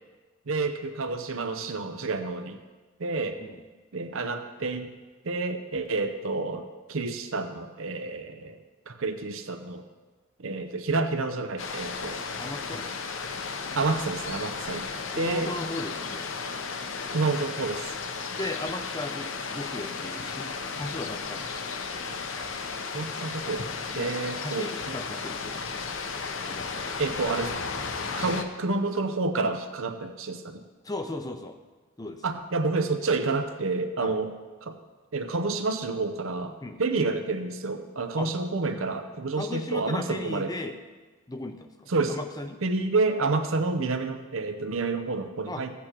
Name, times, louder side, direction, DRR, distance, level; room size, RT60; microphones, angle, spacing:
voice 1, 0.5-2.6 3.0-3.4 3.9-4.9 5.2-6.6 6.9-9.8 10.4-12.2 13.7-14.9 15.2-15.5 17.1-17.9 22.9-23.7 24.0-25.0 27.0-27.5 28.2-30.6 32.2-34.8 35.1-40.5 41.9-42.2 42.6-45.7, right 3 dB, 75° right, 8 dB, 0.7 m, -29 dB
sound 1, 11.6-28.4, left 4 dB, 70° left, 0.7 m, -34 dB
voice 2, 12.4-12.8 15.1-16.3 18.4-21.6 23.9-25.8 26.5-27.1 27.9-28.3 30.8-31.6 32.0-32.2 34.0-34.2 36.6-36.8 38.2-38.3 39.3-40.8 41.3-42.6 45.5-45.6, left 2 dB, 15° left, 6 dB, 0.5 m, -37 dB
15.5 x 8.5 x 3.0 m, 1.3 s
head